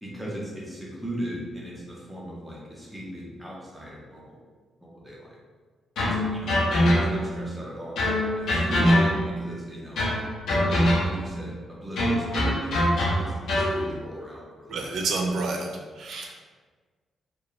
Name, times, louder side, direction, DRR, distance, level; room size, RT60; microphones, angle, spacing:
voice 1, 0.0-4.4 4.8-5.4 6.0-8.0 8.4-10.0 10.7-15.0, equal, 5° right, -5 dB, 0.5 m, -38 dB
sound 1, 6.0-7.4 8.0-9.4 10.0-11.3 12.0-13.8, equal, 90° left, 0.5 m, -23 dB
voice 2, 14.7-16.3, right 3 dB, 65° right, 0 dB, 0.4 m, -29 dB
2.3 x 2.1 x 2.9 m, 1.5 s
wide cardioid pair, 165°, 0 cm